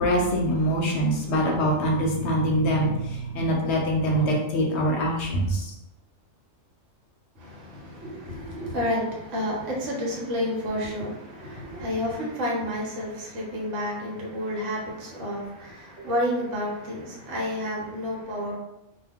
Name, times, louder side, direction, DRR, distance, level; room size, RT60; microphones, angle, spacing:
voice 1, 0.0-5.7, equal, 65° left, -1 dB, 0.8 m, -24 dB
voice 2, 7.4-18.5, left 1 dB, 70° right, -3 dB, 1.1 m, -30 dB
2.3 x 2.2 x 3.4 m, 0.92 s
omnidirectional pair, 1.3 m